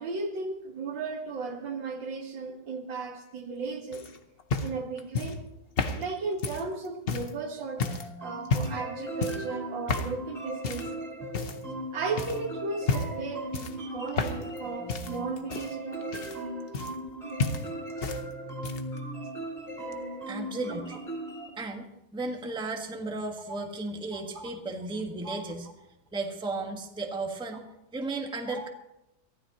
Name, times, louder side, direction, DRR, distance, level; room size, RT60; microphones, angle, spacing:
voice 1, 0.0-4.1 4.6-5.4 5.9-10.9 11.9-16.1 24.1-24.5 25.2-25.4 28.5-28.7, right 4 dB, 75° right, 4 dB, 2.2 m, -35 dB
sound 1, 3.9-7.4 7.8-8.1 8.4-8.9 9.2-9.5 9.9-10.2 10.6-10.9 11.3-11.8 12.2-12.4 12.8-13.2 13.5-14.6 14.9-17.1 17.4-18.2 18.5-19.0 19.9-20.0, left 4 dB, 45° left, 0.7 m, -31 dB
sound 2, 7.8-21.5, right 1 dB, 20° left, 3.6 m, -38 dB
voice 2, 20.3-21.0 21.6-25.7 26.1-27.6 27.9-28.7, right 3 dB, 5° right, 2 dB, 1.1 m, -34 dB
23.5 x 15.0 x 2.9 m, 0.85 s
omnidirectional pair, 2.1 m